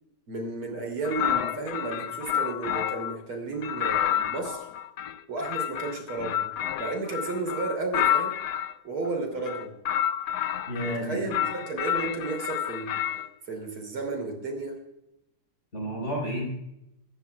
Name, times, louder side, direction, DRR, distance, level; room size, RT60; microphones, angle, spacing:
voice 1, 0.3-4.7 5.3-6.5 6.8-8.3 8.8-9.8 10.8-13.0 13.5-14.8, right 3 dB, 75° right, 3 dB, 3.9 m, -33 dB
sound 1, 1.0-3.2 3.6-8.7 9.4-11.0 11.3-13.3, left 10 dB, 70° left, 1.0 m, -29 dB
voice 2, 10.7-11.4 15.7-16.5, equal, 30° left, -1 dB, 5.2 m, -31 dB
21.5 x 15.0 x 2.4 m, 0.84 s
omnidirectional pair, 2.3 m